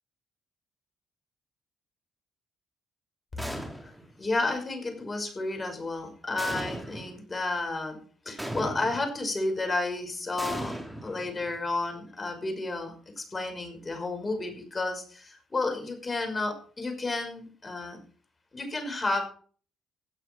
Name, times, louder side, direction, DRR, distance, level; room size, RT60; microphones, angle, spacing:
sound 1, 3.4-4.1 6.4-7.2 8.4-9.2 10.4-11.6, right 1 dB, 5° right, 3.9 m, -37 dB
voice 1, 4.2-8.0 8.3-18.0 18.5-19.2, left 2 dB, 25° left, 5 dB, 5.5 m, -32 dB
17.0 x 9.2 x 4.6 m, 0.43 s
cardioid pair, 90°, 0 cm